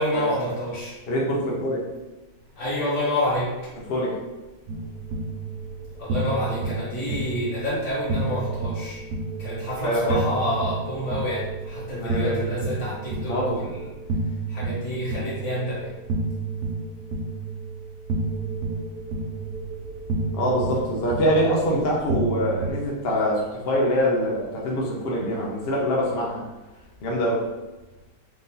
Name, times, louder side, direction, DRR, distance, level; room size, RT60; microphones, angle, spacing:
voice 1, 0.0-1.0 2.5-3.7 6.0-9.0 9.4-13.6 14.5-15.9, left 1 dB, 40° left, -7 dB, 1.8 m, -28 dB
voice 2, 1.1-1.9 3.9-4.1 9.8-10.2 12.0-12.5 13.3-13.6 20.3-26.4 27.0-27.5, equal, 75° left, -3 dB, 0.5 m, -24 dB
sound 1, 4.7-22.7, right 3 dB, 65° right, 1.0 m, -31 dB
4.5 x 2.7 x 3.8 m, 1.1 s
omnidirectional pair, 2.2 m